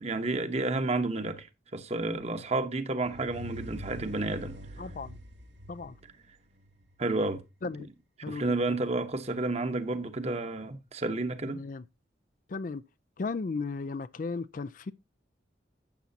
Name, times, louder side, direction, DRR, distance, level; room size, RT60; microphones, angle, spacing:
voice 1, 0.0-1.5 1.7-4.6 7.0-7.4 8.3-11.6, right 2 dB, 35° right, 1.1 m, -31 dB
sound 1, 3.0-6.9, equal, 85° right, 2.4 m, -45 dB
voice 2, 4.8-5.2 5.7-6.0 7.6-7.9 8.2-8.8 11.5-11.8 12.5-12.8 13.2-14.9, left 4 dB, 45° left, 0.4 m, -35 dB
12.0 x 8.3 x 2.7 m
head